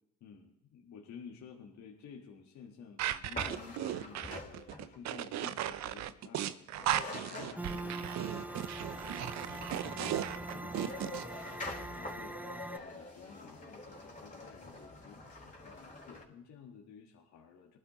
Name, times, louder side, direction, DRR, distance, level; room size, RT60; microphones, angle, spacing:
voice 1, 0.2-17.8, left 6 dB, 65° left, 1 dB, 1.6 m, -53 dB
sound 1, 3.0-11.2, right 12 dB, 65° right, 0.7 m, -36 dB
sound 2, 3.3-5.1 6.5-6.6 6.7-16.2, left 2 dB, 25° left, 3.8 m, -46 dB
sound 3, 7.6-12.8, right 2 dB, 5° right, 0.6 m, -43 dB
20.5 x 11.5 x 3.0 m, 0.82 s
supercardioid pair, 70°, 30 cm